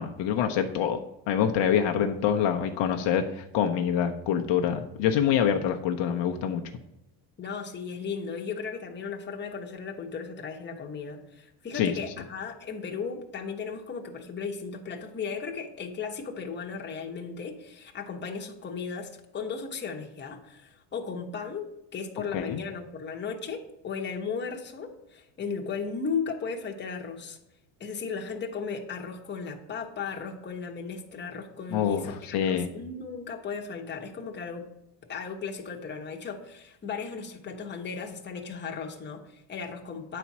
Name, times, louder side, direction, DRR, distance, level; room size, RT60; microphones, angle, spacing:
voice 1, 0.0-6.6 11.7-12.0 22.3-22.6 31.7-32.0 32.3-32.7, left 8 dB, 60° left, 3 dB, 0.8 m, -26 dB
voice 2, 7.4-27.4 27.8-34.6 35.1-40.2, left 5 dB, 20° left, 2 dB, 1.1 m, -36 dB
9.0 x 4.2 x 6.0 m, 0.88 s
cardioid pair, 130°, 49 cm